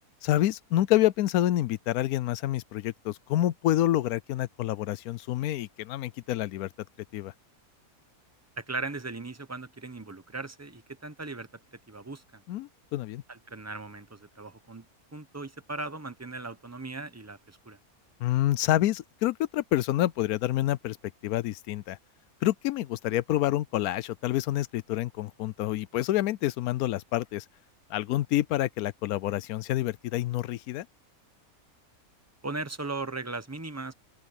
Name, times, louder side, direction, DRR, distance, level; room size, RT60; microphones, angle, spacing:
voice 1, 0.2-6.7 7.1-7.3 12.5-13.2 18.2-21.0 21.2-22.0 22.4-27.4 27.9-30.9, left 14 dB, 80° left, 1.0 m, -27 dB
voice 2, 8.6-11.5 11.9-12.4 13.3-14.9 15.1-17.8 32.4-33.9, right 3 dB, 15° right, 0.7 m, -38 dB
open air
omnidirectional pair, 1.5 m